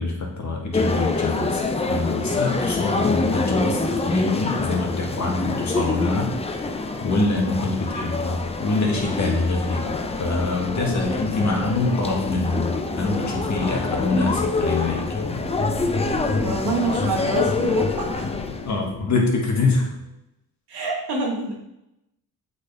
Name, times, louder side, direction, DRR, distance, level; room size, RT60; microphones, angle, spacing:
voice 1, 0.0-1.6 1.9-6.3 7.0-9.9 10.2-15.0 18.6-19.9, left 3 dB, 45° left, 0 dB, 1.7 m, -24 dB
sound 1, 0.7-18.8, left 3 dB, 15° left, 0.5 m, -26 dB
sound 2, 8.8-20.0, left 7 dB, 85° left, 0.7 m, -37 dB
voice 2, 16.4-18.3 20.7-21.5, right 2 dB, 90° right, -1 dB, 1.9 m, -26 dB
8.0 x 4.2 x 3.5 m, 0.84 s
cardioid pair, 90°, 39 cm